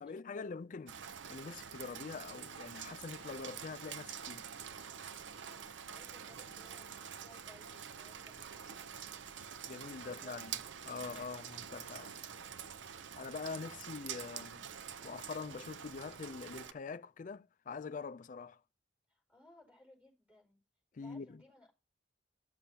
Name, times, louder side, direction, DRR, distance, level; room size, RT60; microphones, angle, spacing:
voice 1, 0.0-4.5 9.7-10.6 10.9-12.1 13.2-18.6 20.9-21.4, left 4 dB, 45° left, 0.4 m, -44 dB
Rain, 0.9-16.7, right 8 dB, 90° right, 0.6 m, -47 dB
voice 2, 5.9-9.3 10.0-10.5 19.1-20.6 20.9-21.7, left 2 dB, 10° right, 5.0 m, -62 dB
13.5 x 7.0 x 2.8 m
head